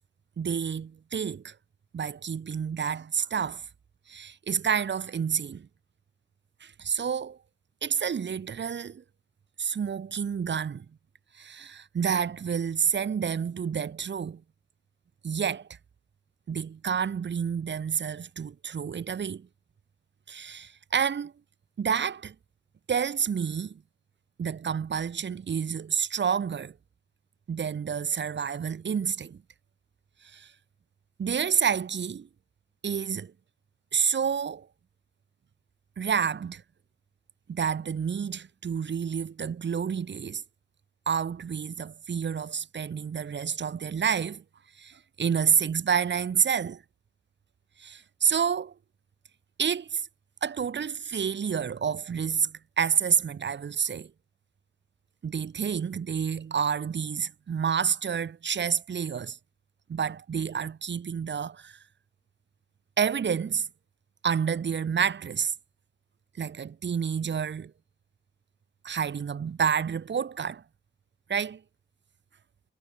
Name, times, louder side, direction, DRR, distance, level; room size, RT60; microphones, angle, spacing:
voice 1, 0.4-1.5 1.9-3.7 4.1-5.7 6.6-7.4 7.8-9.0 9.6-10.9 11.3-14.4 15.2-15.7 16.5-19.5 20.3-21.3 21.8-22.3 22.9-23.8 24.4-26.7 27.5-29.4 30.2-30.5 31.2-32.3 32.8-33.3 33.9-34.7 36.0-36.6 37.5-40.4 41.1-44.4 44.8-46.8 47.8-48.7 49.6-50.1 50.4-54.1 55.2-59.4 59.9-61.8 63.0-63.7 64.2-65.5 66.4-67.7 68.8-70.6 71.3-71.6, right 7 dB, 60° right, 2.1 m, -29 dB
wide cardioid pair, 115°, 21 cm